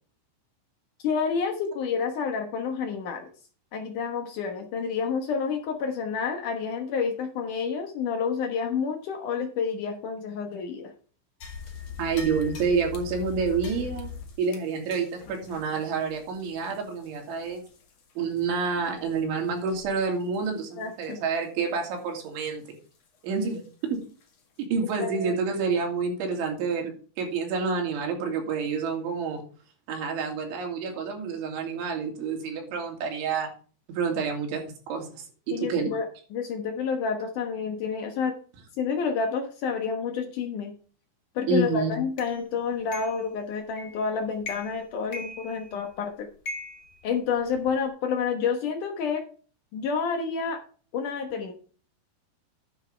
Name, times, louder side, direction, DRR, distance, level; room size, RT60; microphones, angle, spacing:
voice 1, 1.0-3.3 3.7-10.9 20.8-21.2 25.0-25.4 35.5-38.4 38.8-40.7 41.4-46.3 47.0-49.2 49.7-50.6 50.9-51.5, left 6 dB, 80° left, 4 dB, 1.8 m, -29 dB
sound 1, 11.4-18.0 18.3-18.5 19.0-19.2 19.7-20.0 20.3-20.5 21.0-21.1 23.5-23.6 24.2-24.3, left 7 dB, 50° left, 2.1 m, -41 dB
voice 2, 12.0-14.1 14.4-17.6 18.2-22.6 23.2-24.0 24.7-29.4 29.9-33.5 33.9-35.9 41.5-41.9, right 5 dB, 75° right, 1 dB, 5.1 m, -28 dB
sound 2, 42.2-42.3 42.9-43.2 43.8-44.1 44.4-44.8 45.1-45.9 46.4-47.7, left 2 dB, 35° left, 1.8 m, -39 dB
11.0 x 9.6 x 3.4 m, 0.40 s
omnidirectional pair, 5.6 m